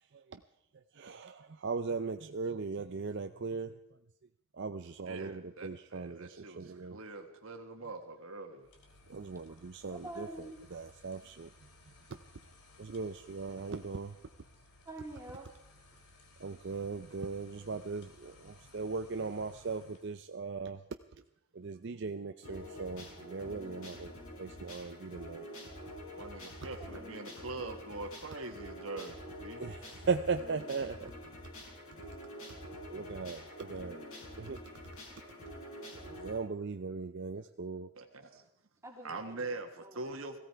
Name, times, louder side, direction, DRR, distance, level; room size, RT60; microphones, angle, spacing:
voice 1, 1.0-3.7 4.6-7.0 9.1-10.3 10.7-11.5 12.8-14.1 16.4-20.8 21.5-24.1 24.4-25.5 29.6-31.1 32.9-34.1 34.5-34.6 36.0-37.9, right 4 dB, 50° right, 8 dB, 0.5 m, -38 dB
voice 2, 5.0-8.7 26.2-29.6 37.9-38.4 39.0-40.4, right 3 dB, 65° right, 5 dB, 1.5 m, -43 dB
sound 1, 8.6-20.2, left 2 dB, 90° left, 2.6 m, -60 dB
voice 3, 9.9-10.8 14.8-15.5 26.8-26.9 38.8-40.2, right 1 dB, 15° right, -2 dB, 2.5 m, -47 dB
sound 2, 22.4-36.4, left 1 dB, 65° left, 6.4 m, -47 dB
17.0 x 16.5 x 4.6 m, 0.80 s
head